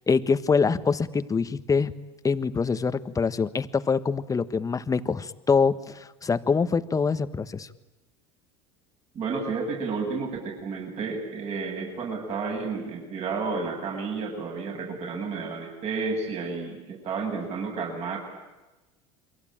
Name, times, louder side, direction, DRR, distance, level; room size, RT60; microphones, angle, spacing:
voice 1, 0.1-1.9 2.2-7.7, left 5 dB, 20° left, 12 dB, 1.4 m, -24 dB
voice 2, 9.1-18.2, right 4 dB, 45° right, 1 dB, 7.9 m, -31 dB
28.5 x 23.0 x 8.9 m, 1.1 s
supercardioid pair, 95°, 15 cm